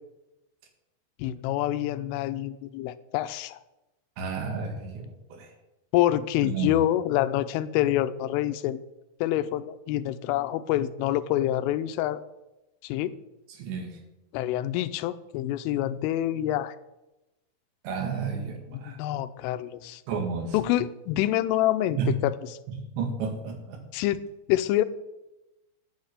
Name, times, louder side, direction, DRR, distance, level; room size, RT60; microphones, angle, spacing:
voice 1, 1.2-3.6 5.9-8.8 9.2-12.2 12.8-13.1 14.3-16.8 18.7-20.0 20.5-22.3 23.9-24.2 24.5-24.8, left 13 dB, 80° left, 11 dB, 3.1 m, -26 dB
voice 2, 4.2-5.0 5.3-5.5 6.4-6.9 13.5-14.0 17.8-19.0 20.1-20.6 21.9-22.1 23.0-23.8, right 5 dB, 65° right, 4 dB, 3.9 m, -31 dB
11.5 x 8.6 x 8.1 m, 0.97 s
omnidirectional pair, 5.9 m